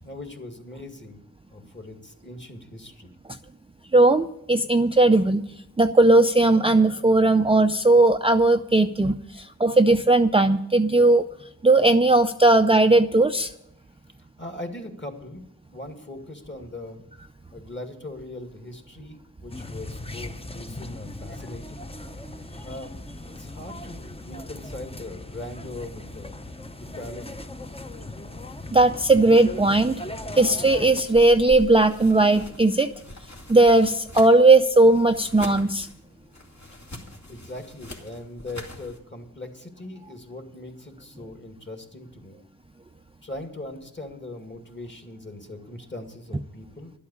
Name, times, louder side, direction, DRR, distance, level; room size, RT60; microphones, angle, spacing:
voice 1, 0.0-1.2 1.5-3.1 9.3-9.4 14.2-15.4 15.7-17.0 17.5-21.8 22.6-23.0 23.3-26.3 26.8-27.4 36.6-36.8 37.3-42.4 43.2-46.9, left 2 dB, 30° left, 5 dB, 2.1 m, -40 dB
voice 2, 3.9-5.4 5.8-11.3 11.6-13.5 28.7-30.0 30.4-32.9 33.5-35.9, right 2 dB, 15° right, 7 dB, 0.5 m, -18 dB
sound 1, 19.5-31.0, left 2 dB, 15° left, 0.8 m, -38 dB
sound 2, 31.0-39.0, left 2 dB, 50° left, 2.2 m, -42 dB
12.0 x 8.5 x 8.5 m, 0.80 s
wide cardioid pair, 60°, 35 cm